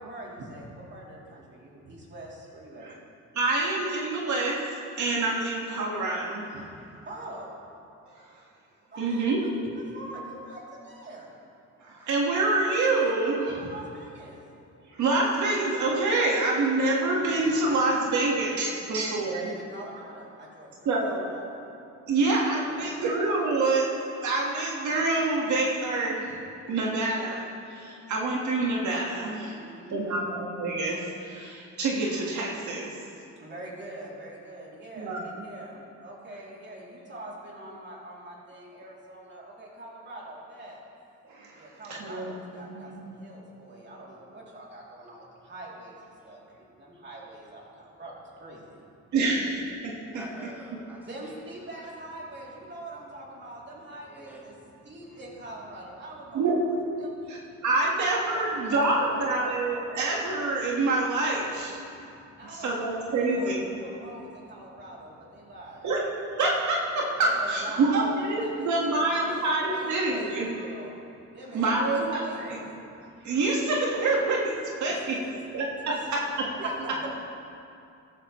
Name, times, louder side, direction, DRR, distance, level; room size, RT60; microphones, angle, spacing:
voice 1, 0.0-2.9 7.0-7.6 8.9-9.5 9.7-11.3 13.4-14.4 18.9-21.7 22.7-23.1 29.5-30.4 33.4-40.8 41.5-48.6 51.0-54.5 54.8-56.4 57.0-57.4 58.0-59.4 62.4-65.9 67.2-71.0 71.3-72.7 74.9-75.4 75.9-76.3 76.5-77.1, right 1 dB, 35° right, -4 dB, 3.1 m, -44 dB
voice 2, 3.3-4.6 4.9-6.6 9.0-9.4 11.8-13.6 14.9-19.5 20.8-21.3 22.1-26.3 26.7-29.5 29.9-32.9 35.0-35.5 41.3-41.6 41.9-42.3 42.7-43.2 49.1-50.2 56.3-56.6 57.3-57.4 57.6-61.8 62.6-63.6 65.8-66.0 66.4-70.6 71.5-72.6 73.2-74.5 74.8-75.2 75.5-75.7, right 2 dB, 70° right, -3 dB, 1.7 m, -26 dB
voice 3, 50.1-51.3 51.6-51.9 54.0-54.4 55.0-55.1 57.4-57.5 61.8-62.5, equal, 5° right, -4 dB, 2.2 m, -49 dB
14.0 x 12.0 x 3.2 m, 2.6 s
cardioid pair, 90°, 30 cm